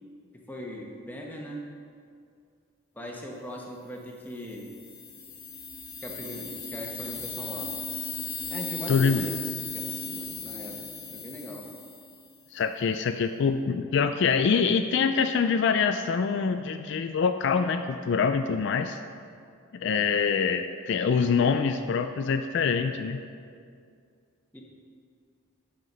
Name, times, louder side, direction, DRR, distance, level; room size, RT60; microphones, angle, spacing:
voice 1, 0.5-1.6 2.9-4.7 6.0-7.7 8.5-10.8 11.1-11.7 24.5-24.6, left 1 dB, 10° left, -1 dB, 1.0 m, -39 dB
sound 1, 4.4-12.4, left 5 dB, 40° left, 1.4 m, -37 dB
voice 2, 8.9-9.3 12.5-19.0 19.7-23.2, left 5 dB, 60° left, 8 dB, 0.3 m, -25 dB
9.3 x 5.8 x 5.4 m, 2.3 s
head